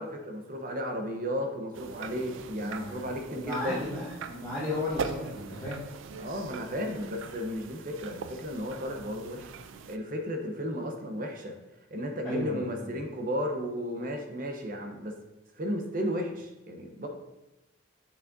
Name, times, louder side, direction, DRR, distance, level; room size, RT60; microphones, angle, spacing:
voice 1, 0.0-3.8 6.2-9.5 9.9-11.5 11.9-15.1 15.6-17.1, equal, 45° right, 3 dB, 0.8 m, -34 dB
sound 1, 1.7-10.0, right 5 dB, 80° right, 0.4 m, -41 dB
voice 2, 2.5-5.8 12.2-12.9, left 2 dB, 15° left, -10 dB, 1.3 m, -35 dB
6.4 x 5.9 x 2.6 m, 0.98 s
head